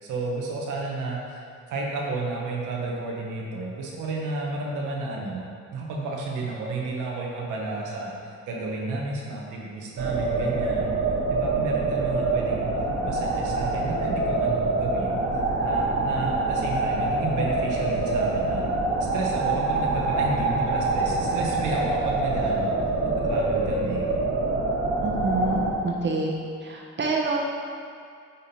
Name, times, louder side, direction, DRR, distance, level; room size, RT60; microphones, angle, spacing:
voice 1, 0.0-1.4 1.7-5.5 5.7-10.9 11.3-12.7 13.0-15.2 15.6-18.7 19.1-22.8 23.0-24.1, right 3 dB, 85° right, -2 dB, 1.3 m, -31 dB
sound 1, 10.0-25.7, right 2 dB, 65° right, 1.8 m, -25 dB
voice 2, 25.0-26.3 26.6-27.4, right 3 dB, 40° right, -2 dB, 1.2 m, -27 dB
9.6 x 3.8 x 4.3 m, 2.4 s
cardioid pair, 90°, 30 cm